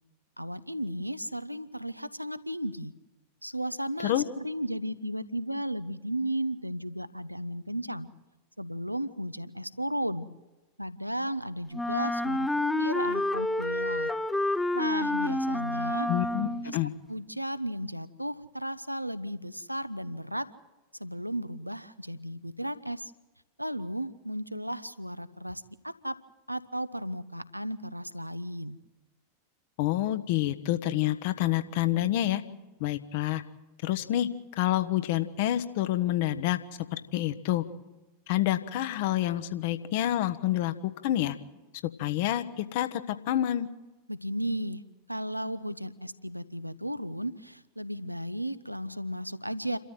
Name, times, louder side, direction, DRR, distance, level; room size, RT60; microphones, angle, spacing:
voice 1, 0.4-2.9 3.4-8.1 8.6-10.3 10.8-12.5 12.7-14.1 14.7-16.1 16.6-16.8 17.1-20.5 21.0-23.1 23.6-26.2 26.5-28.8 44.1-44.8 45.1-49.8, equal, 90° right, 15 dB, 1.0 m, -34 dB
Wind instrument woodwind instrument, 11.7-16.8, left 1 dB, 5° left, 0.7 m, -29 dB
voice 2, 16.1-16.9 29.8-32.4 32.8-33.4 33.8-34.3 34.6-36.6 36.9-37.6 38.3-41.4 42.0-43.7, left 13 dB, 50° left, 10 dB, 1.4 m, -28 dB
29.0 x 13.5 x 7.7 m, 1.1 s
figure-of-eight pair, 90°, 0 cm